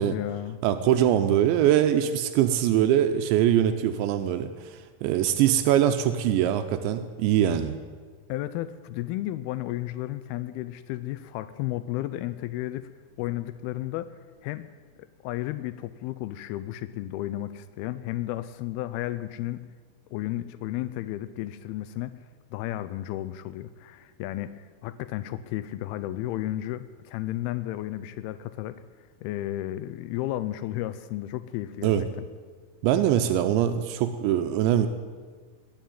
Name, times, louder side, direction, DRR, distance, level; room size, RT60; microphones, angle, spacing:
voice 1, 0.0-0.6 8.3-12.9 13.2-14.7 15.2-19.7 20.1-22.1 22.5-28.8 29.2-32.2, left 14 dB, 90° left, 13 dB, 2.2 m, -33 dB
voice 2, 0.6-7.8 31.8-32.0 32.8-34.9, right 11 dB, 85° right, 8 dB, 3.0 m, -23 dB
20.5 x 7.2 x 9.2 m, 1.6 s
omnidirectional pair, 5.1 m